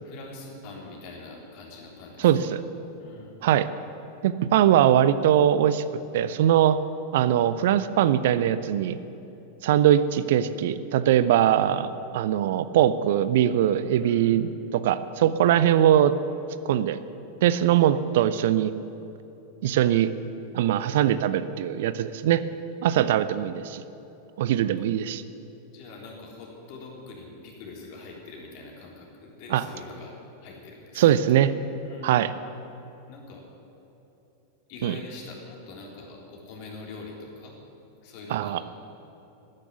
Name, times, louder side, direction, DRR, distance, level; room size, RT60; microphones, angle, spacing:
voice 1, 0.0-2.5 3.0-3.4 14.0-14.3 21.0-21.5 25.6-30.2 30.4-31.0 31.3-31.4 31.8-32.3 33.1-33.4 34.7-37.6 38.0-38.6, left 3 dB, 45° left, -1 dB, 3.6 m, -43 dB
voice 2, 2.2-2.6 3.4-3.7 4.2-5.8 6.1-6.8 7.1-9.0 9.6-16.1 16.6-17.0 17.4-18.7 19.6-20.1 20.5-22.4 22.8-23.8 24.4-25.2 29.5-29.6 31.0-31.5 32.0-32.3 34.8-35.0 38.3-38.6, right 11 dB, 55° right, 14 dB, 0.5 m, -21 dB
13.0 x 9.9 x 9.8 m, 2.9 s
figure-of-eight pair, 90°, 0 cm